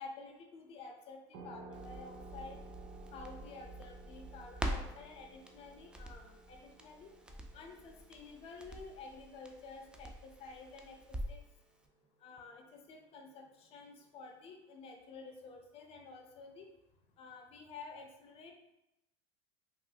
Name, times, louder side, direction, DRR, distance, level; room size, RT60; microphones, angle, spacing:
voice 1, 0.0-2.6 3.1-7.1 7.5-11.4 12.2-16.7 17.2-18.5, left 4 dB, 45° left, 3 dB, 0.6 m, -51 dB
sound 1, 1.3-10.5, right 3 dB, 55° right, 0.5 m, -56 dB
Crackle, 1.7-11.5 11.8-11.9, right 1 dB, 5° right, 0.3 m, -45 dB
3.2 x 2.4 x 2.7 m, 0.89 s
supercardioid pair, 105°, 14 cm